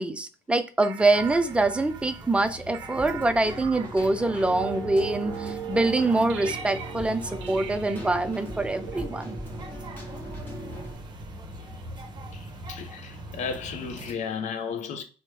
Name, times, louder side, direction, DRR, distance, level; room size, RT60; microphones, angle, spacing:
voice 1, 0.0-7.2 7.5-9.4, right 2 dB, 5° right, 0.4 m, -25 dB
sound 1, 0.8-9.7, right 8 dB, 90° right, 0.5 m, -39 dB
sound 2, 1.0-14.1, right 1 dB, 30° right, 0.8 m, -42 dB
Keyboard (musical), 3.0-11.0, equal, 15° left, 1.1 m, -40 dB
voice 2, 12.3-15.0, left 6 dB, 55° left, 0.7 m, -34 dB
3.1 x 2.1 x 3.2 m
hypercardioid pair, 65°, 15 cm